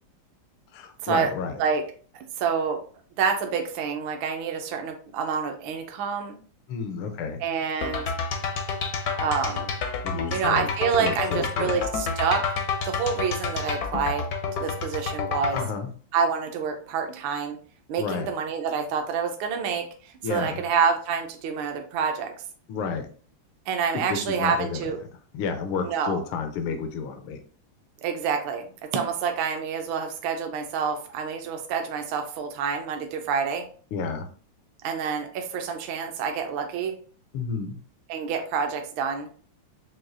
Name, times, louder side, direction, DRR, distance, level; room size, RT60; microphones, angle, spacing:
voice 1, 0.7-1.6 6.7-7.4 10.0-10.7 11.0-11.8 15.5-15.9 18.0-18.3 20.2-20.6 22.7-23.1 24.1-24.9 25.3-27.4 33.9-34.3 37.3-37.8, left 5 dB, 80° left, 5 dB, 1.5 m, -31 dB
voice 2, 2.1-2.8 3.2-6.4 7.4-8.0 9.2-9.7 10.3-12.4 12.8-14.3 14.6-15.6 16.1-17.6 17.9-22.3 23.7-25.0 25.8-26.2 28.0-33.7 34.8-37.0 38.1-39.3, right 6 dB, 75° right, 4 dB, 1.4 m, -27 dB
sound 1, 7.8-15.7, left 5 dB, 65° left, 0.9 m, -29 dB
6.0 x 2.3 x 2.5 m, 0.43 s
omnidirectional pair, 2.3 m